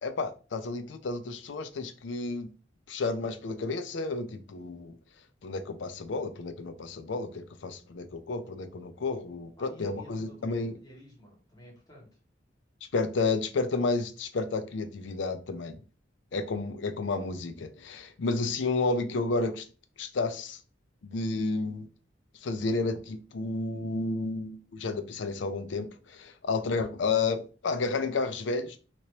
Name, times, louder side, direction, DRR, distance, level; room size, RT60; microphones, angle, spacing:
voice 1, 0.0-2.5 2.9-5.0 5.4-10.7 12.9-15.8 16.3-19.6 20.0-20.6 21.0-21.9 22.4-28.8, left 3 dB, 75° left, 0.5 m, -31 dB
voice 2, 9.6-10.5 10.7-12.1, left 1 dB, 20° left, 1.4 m, -50 dB
3.0 x 2.8 x 2.9 m
head